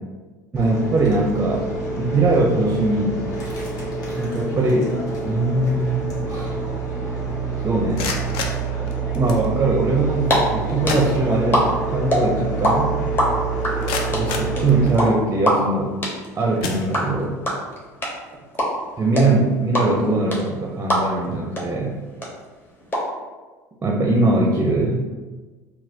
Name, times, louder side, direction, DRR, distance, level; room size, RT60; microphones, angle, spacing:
voice 1, 0.5-3.3 4.2-5.0 5.2-6.5 7.6-8.1 9.2-13.0 14.1-16.0 16.4-17.4 19.0-21.9 23.8-25.0, right 2 dB, 25° right, 0 dB, 0.5 m, -21 dB
sound 1, 0.6-14.8, right 3 dB, 40° left, 1.3 m, -27 dB
sound 2, 7.8-9.5 10.5-10.6 10.9-11.8 12.1-12.2 12.8-12.9 13.4-15.3 15.9-16.1 16.6-17.4, left 4 dB, 60° left, 0.5 m, -31 dB
sound 3, 10.0-10.4 10.6-12.7 13.0-21.3 21.6-21.7 21.9-23.0, equal, 25° left, 1.0 m, -23 dB
4.0 x 2.2 x 2.6 m, 1.3 s
hypercardioid pair, 70°, 10 cm